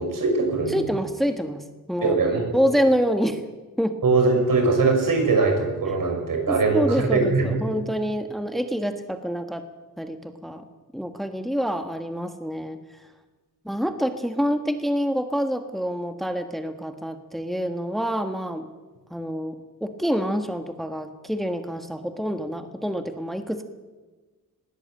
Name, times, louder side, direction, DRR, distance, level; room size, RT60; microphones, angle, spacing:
voice 1, 0.0-0.8 2.0-2.7 4.0-7.6, right 3 dB, 70° right, 4 dB, 6.2 m, -21 dB
voice 2, 0.7-2.3 2.5-3.4 3.8-4.0 6.5-9.6 10.0-10.6 10.9-12.8 13.6-18.7 19.1-19.6 19.8-23.6, equal, ahead, 7 dB, 1.4 m, -27 dB
20.5 x 17.0 x 8.7 m, 1.3 s
wide cardioid pair, 125°, 35 cm